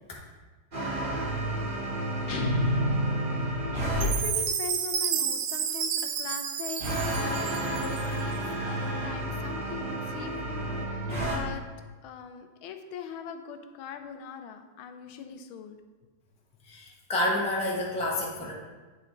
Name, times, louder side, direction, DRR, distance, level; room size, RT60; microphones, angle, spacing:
sound 1, 0.7-4.1 6.8-11.4, right 1 dB, 25° right, 1.6 m, -31 dB
sound 2, 2.3-4.3, equal, 65° left, 1.3 m, -29 dB
voice 1, 4.0-11.6 12.0-15.8, left 7 dB, 90° left, 7 dB, 1.5 m, -41 dB
Chime, 4.0-8.2, right 8 dB, 90° right, 1.4 m, -31 dB
voice 2, 16.7-18.5, left 1 dB, 10° left, -3 dB, 0.4 m, -29 dB
8.8 x 4.5 x 3.8 m, 1.3 s
omnidirectional pair, 2.2 m